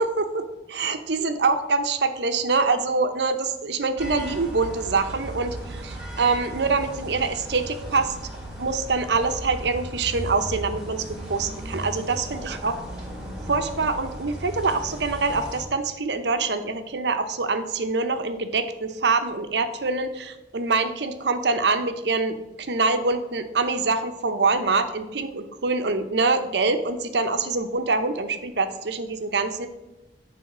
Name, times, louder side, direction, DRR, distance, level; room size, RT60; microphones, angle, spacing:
voice 1, 0.0-8.2 8.6-12.8 13.5-29.7, right 3 dB, 70° right, 8 dB, 0.8 m, -25 dB
sound 1, 4.0-15.6, right 1 dB, 5° right, 2.4 m, -36 dB
10.5 x 3.5 x 6.0 m, 1.0 s
head